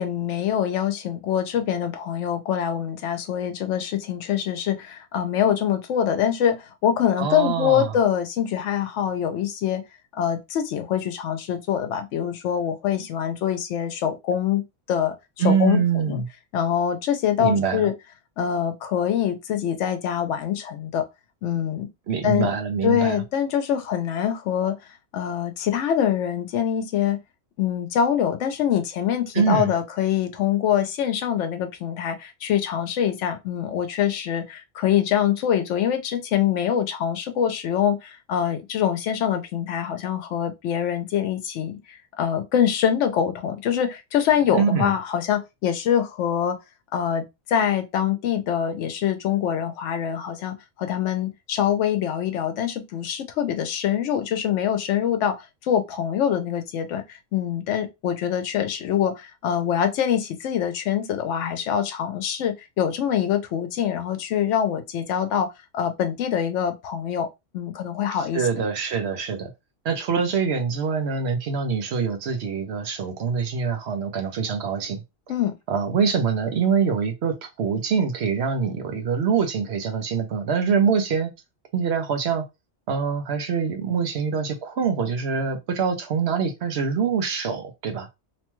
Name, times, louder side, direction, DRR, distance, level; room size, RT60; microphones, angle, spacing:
voice 1, 0.0-9.8 10.1-14.6 14.9-15.1 15.4-16.2 16.5-17.9 18.4-21.1 21.4-21.9 22.2-22.5 22.8-24.8 25.1-27.2 27.6-46.6 46.9-67.3 67.5-68.4 75.3-75.5, left 9 dB, 75° left, 0.9 m, -24 dB
voice 2, 7.2-7.9 15.4-16.2 17.4-17.9 22.1-23.2 29.3-29.7 44.5-44.9 68.1-69.5 69.8-75.0 75.7-81.3 81.7-82.5 82.9-88.1, right 6 dB, 65° right, 0.9 m, -24 dB
2.9 x 2.2 x 3.0 m
omnidirectional pair, 1.3 m